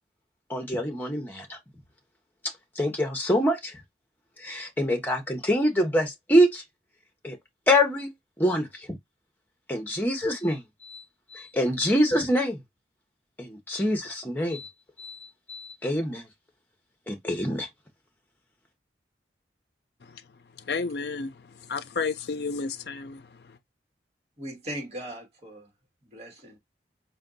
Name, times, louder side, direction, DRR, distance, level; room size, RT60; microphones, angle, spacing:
voice 1, 0.5-1.6 2.7-3.8 4.4-6.6 7.2-7.4 7.7-8.1 8.4-8.9 9.7-11.0 11.3-12.6 13.4-14.7 15.0-15.2 15.5-16.3 17.1-17.7, equal, 10° left, 1.1 m, -25 dB
voice 2, 20.7-21.3 21.6-23.3, left 4 dB, 65° left, 0.5 m, -31 dB
voice 3, 24.4-25.7 26.0-26.6, right 1 dB, 35° right, 1.5 m, -39 dB
4.3 x 2.3 x 3.9 m
head